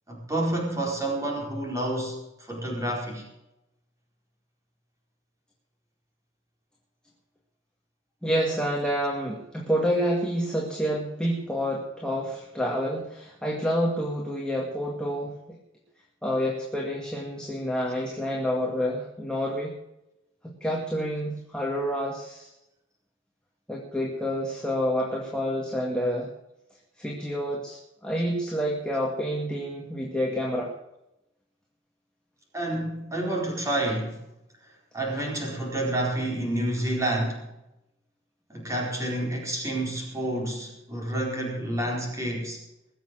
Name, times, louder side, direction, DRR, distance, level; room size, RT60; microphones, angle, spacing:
voice 1, 0.1-3.3 32.5-34.2 34.9-37.4 38.5-42.6, right 1 dB, 15° right, -2 dB, 4.4 m, -29 dB
voice 2, 8.2-15.4 16.2-19.8 20.4-22.5 23.7-26.3 27.0-30.7, equal, 5° left, -2 dB, 2.0 m, -28 dB
21.0 x 7.3 x 6.4 m, 0.88 s
head